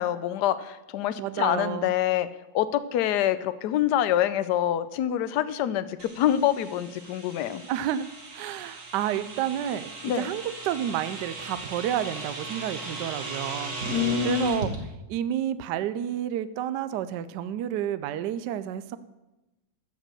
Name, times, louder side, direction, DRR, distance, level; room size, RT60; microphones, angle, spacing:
voice 1, 0.0-2.3 2.5-7.6 10.0-10.3 13.9-14.7, left 11 dB, 70° left, 14 dB, 1.1 m, -26 dB
voice 2, 1.2-1.9 7.7-8.1 8.3-9.9 10.2-13.7 14.2-14.7 15.1-19.0, right 10 dB, 70° right, 14 dB, 1.1 m, -30 dB
sound 1, 6.0-14.8, right 3 dB, 45° right, 1.9 m, -37 dB
14.0 x 5.1 x 7.6 m, 1.0 s
omnidirectional pair, 2.1 m